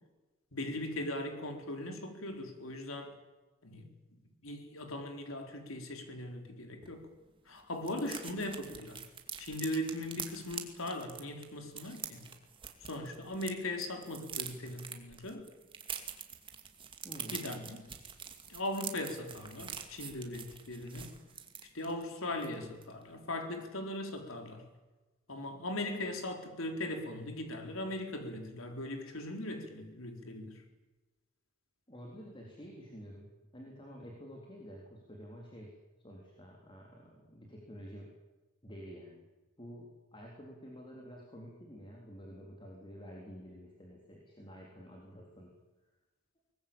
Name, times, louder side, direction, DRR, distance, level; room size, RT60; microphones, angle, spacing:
voice 1, 0.5-3.1 3.6-3.9 4.4-7.1 7.5-9.0 9.4-12.3 12.9-15.5 17.3-17.8 18.5-21.2 21.7-24.6 25.3-30.6, left 1 dB, 90° left, 5 dB, 4.1 m, -39 dB
sound 1, 6.8-6.9 7.2-7.3 7.5-13.5 13.8-22.0 22.4-22.6 22.8-23.1, right 7 dB, 25° right, 2.4 m, -45 dB
voice 2, 17.0-17.5 31.9-35.7 36.0-38.1 38.6-39.3 39.6-45.5, equal, 25° left, -1 dB, 3.8 m, -49 dB
23.5 x 20.0 x 8.8 m, 1.1 s
head